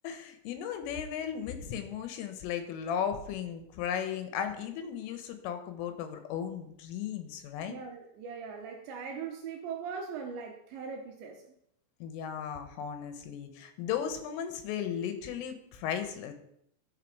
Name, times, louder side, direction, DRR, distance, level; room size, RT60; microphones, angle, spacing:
voice 1, 0.0-7.8 12.0-16.3, left 8 dB, 85° left, 7 dB, 3.6 m, -36 dB
voice 2, 7.7-11.5, right 6 dB, 80° right, 2 dB, 2.8 m, -40 dB
11.5 x 5.7 x 4.7 m, 0.74 s
omnidirectional pair, 5.7 m